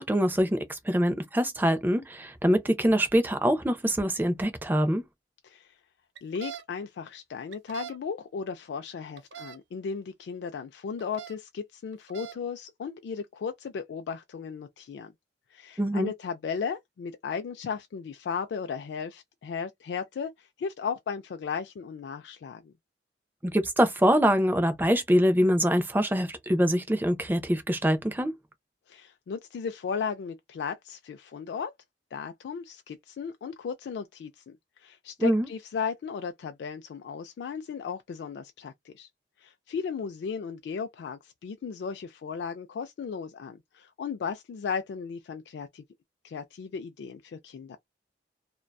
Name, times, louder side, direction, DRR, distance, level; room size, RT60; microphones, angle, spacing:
voice 1, 0.0-5.0 15.8-16.1 23.5-28.3 35.2-35.5, equal, 10° right, 0.4 m, -24 dB
voice 2, 5.4-5.7 6.2-15.1 15.5-22.7 28.9-31.7 32.1-39.1 39.4-45.8 46.2-47.8, left 6 dB, 75° left, 0.3 m, -36 dB
sound 1, 6.1-6.6 7.5-8.0 9.2-9.6 11.0-11.3 11.9-12.4, right 10 dB, 85° right, 0.5 m, -41 dB
2.5 x 2.2 x 2.2 m
head